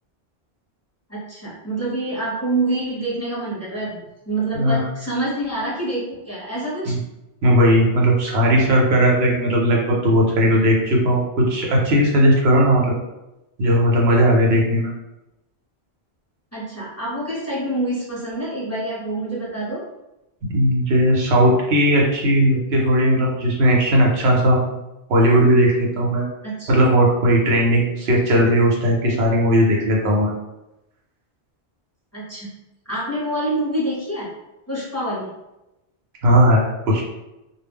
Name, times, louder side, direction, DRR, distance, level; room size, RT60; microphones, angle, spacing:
voice 1, 1.1-7.0 16.5-19.8 26.4-26.7 32.1-32.5 32.9-34.3 34.7-35.3, right 1 dB, 15° left, -8 dB, 0.8 m, -26 dB
voice 2, 4.5-4.8 6.9-7.0 7.4-12.9 13.6-14.9 20.5-24.7 25.1-26.2 26.7-30.3 36.2-37.0, equal, 75° right, -2 dB, 0.9 m, -17 dB
2.2 x 2.0 x 3.4 m, 0.95 s
omnidirectional pair, 1.1 m